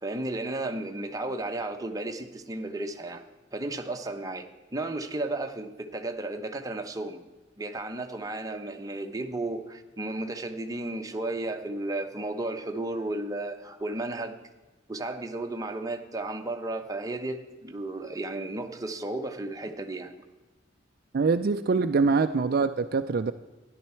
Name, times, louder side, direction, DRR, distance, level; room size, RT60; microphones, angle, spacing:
voice 1, 0.0-3.2 3.5-7.2 7.6-14.4 14.9-20.1, right 2 dB, 20° right, 0.9 m, -33 dB
voice 2, 21.1-23.3, right 4 dB, 50° right, 0.4 m, -24 dB
13.0 x 10.5 x 4.4 m
head